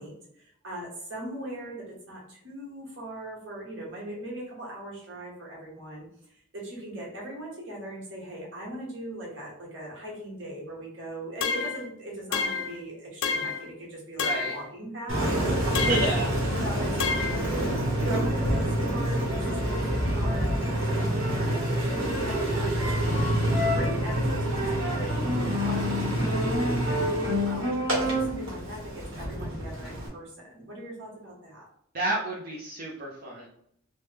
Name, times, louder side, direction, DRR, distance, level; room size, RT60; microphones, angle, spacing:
voice 1, 0.0-16.1 16.6-17.7 18.0-31.7, right 1 dB, 70° right, -4 dB, 1.2 m, -39 dB
sound 1, 11.4-11.9 12.3-12.8 13.2-13.7 14.2-14.6 15.7-16.2 17.0-17.4, left 5 dB, 70° left, 0.4 m, -29 dB
voice 2, 14.2-14.5 15.7-16.3 31.9-33.5, right 2 dB, 45° right, -4 dB, 0.5 m, -30 dB
Engine, 15.1-30.1, equal, 90° right, 1.0 m, -27 dB
3.1 x 2.1 x 3.2 m, 0.68 s
head